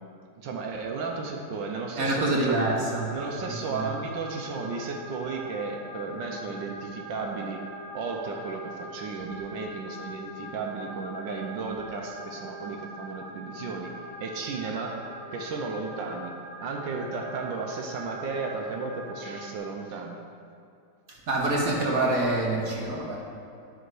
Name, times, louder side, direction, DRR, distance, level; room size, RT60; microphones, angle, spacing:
voice 1, 0.4-2.7 3.1-7.6 7.9-13.9 14.2-15.0 15.3-16.3 16.6-20.2, right 4 dB, 80° right, 1 dB, 1.5 m, -34 dB
voice 2, 2.0-3.1 3.7-3.9 21.3-23.2, right 2 dB, 55° right, -2 dB, 1.4 m, -26 dB
sound 1, 2.9-19.6, equal, 70° left, 2.7 m, -42 dB
10.5 x 6.5 x 4.8 m, 2.5 s
omnidirectional pair, 2.0 m